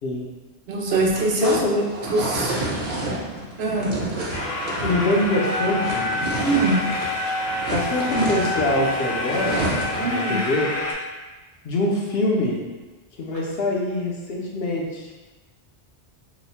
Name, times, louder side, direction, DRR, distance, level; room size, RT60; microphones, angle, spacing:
voice 1, 0.7-1.6 2.1-2.5 3.6-3.9 6.4-6.8 10.0-10.4, right 2 dB, 75° right, -1 dB, 0.8 m, -22 dB
sound 1, 0.8-7.2 7.4-10.1, right 1 dB, 45° right, 0.8 m, -30 dB
voice 2, 1.4-1.8 4.8-6.1 7.7-9.6 10.0-10.7 11.6-12.6 13.2-15.1, left 1 dB, 65° left, -2 dB, 0.8 m, -24 dB
sound 2, 4.3-10.9, left 2 dB, 50° left, 0.4 m, -27 dB
2.9 x 2.1 x 4.1 m, 1.2 s
omnidirectional pair, 1.1 m